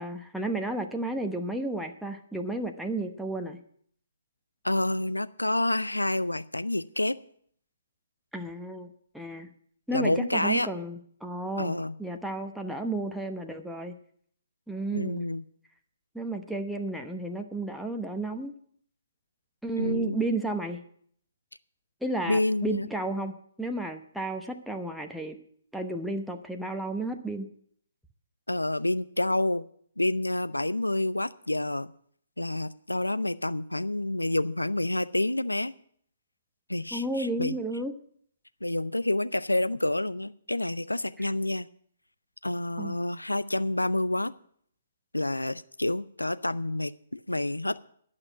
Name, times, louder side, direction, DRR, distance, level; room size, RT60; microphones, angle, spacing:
voice 1, 0.0-3.6 8.3-9.5 9.9-14.0 14.7-15.2 16.1-18.5 19.6-20.8 22.0-25.4 25.7-27.5 36.9-37.9 42.8-42.9, right 2 dB, ahead, 3 dB, 0.9 m, -32 dB
voice 2, 4.6-7.2 9.9-10.7 11.6-12.0 14.9-15.5 19.8-20.2 22.3-22.9 28.5-29.7 30.0-31.9 32.4-35.7 36.7-37.6 38.6-41.7 42.4-44.3 45.1-47.8, left 1 dB, 90° left, 15 dB, 0.5 m, -28 dB
11.5 x 5.9 x 9.2 m, 0.62 s
figure-of-eight pair, 130°, 0 cm